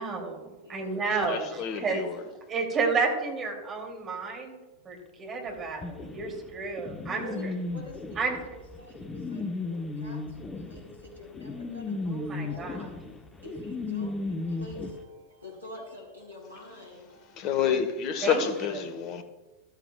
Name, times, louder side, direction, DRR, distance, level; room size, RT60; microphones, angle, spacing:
voice 1, 0.0-2.0 2.5-7.2 8.2-8.4 12.0-12.9 18.2-18.5, right 4 dB, 25° right, 2.7 m, -31 dB
voice 2, 0.6-1.4 4.8-5.5 7.2-12.9 13.4-17.5 18.3-18.7, left 1 dB, 80° right, 4.1 m, -46 dB
voice 3, 1.3-2.2 17.4-19.2, left 8 dB, 40° left, 1.2 m, -29 dB
sound 1, 5.8-14.9, left 3 dB, 15° left, 1.1 m, -35 dB
14.0 x 13.0 x 2.3 m
figure-of-eight pair, 90°, 0 cm